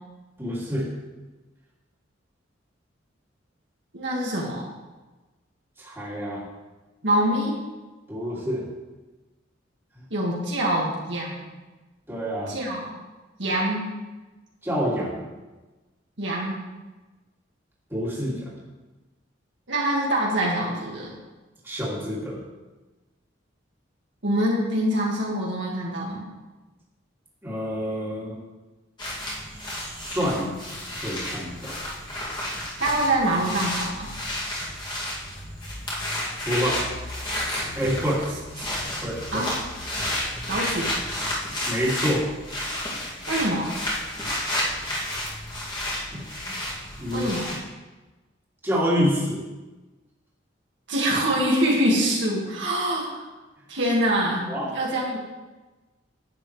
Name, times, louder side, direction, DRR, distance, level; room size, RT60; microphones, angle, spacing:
voice 1, 0.4-0.9 5.8-6.4 8.1-8.6 12.1-12.5 14.6-15.2 17.9-18.5 21.6-22.4 27.4-28.4 29.7-30.6 31.0-31.8 36.5-36.8 37.7-38.2 39.0-39.5 41.7-42.2 46.1-46.2 46.5-46.6 47.0-47.3 48.6-49.4 54.5-54.7, equal, 10° right, -7 dB, 2.6 m, -27 dB
voice 2, 3.9-4.7 7.0-7.5 10.1-11.4 12.5-13.0 13.4-13.9 16.2-16.6 19.7-21.1 24.2-26.2 32.8-34.1 39.3-39.5 40.5-41.0 43.3-43.7 47.1-47.4 50.9-53.2 53.7-54.4 54.7-55.2, right 1 dB, 65° right, -4 dB, 2.0 m, -24 dB
sound 1, 29.0-47.6, left 1 dB, 25° left, 2.4 m, -31 dB
10.5 x 8.6 x 3.3 m, 1.2 s
head